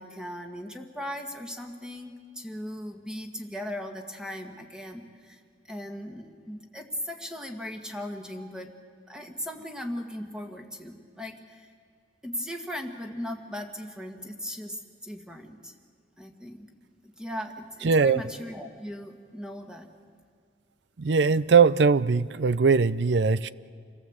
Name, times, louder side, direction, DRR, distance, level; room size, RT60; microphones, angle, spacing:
voice 1, 0.0-5.4 5.7-8.7 9.1-11.7 12.2-15.7 16.2-16.7 17.0-19.9, equal, 5° right, 4 dB, 1.7 m, -38 dB
voice 2, 17.8-18.2 21.0-23.5, right 5 dB, 70° right, 17 dB, 0.6 m, -21 dB
27.5 x 17.5 x 8.0 m, 2.1 s
head